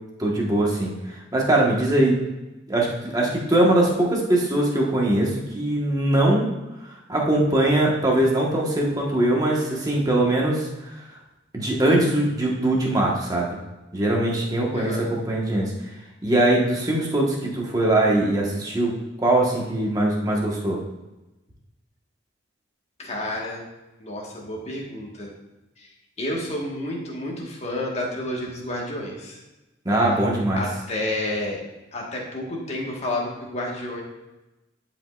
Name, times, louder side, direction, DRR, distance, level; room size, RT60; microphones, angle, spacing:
voice 1, 0.2-2.2 2.7-6.5 6.8-11.0 11.5-13.5 13.9-15.7 16.2-18.9 19.2-20.8 29.8-30.6, right 1 dB, 20° right, -2 dB, 1.4 m, -21 dB
voice 2, 14.7-15.1 23.0-23.6 24.0-25.3 25.8-29.4 30.6-31.6 31.9-34.0, left 1 dB, 35° left, -2 dB, 1.6 m, -30 dB
11.5 x 5.3 x 2.5 m, 1.0 s
head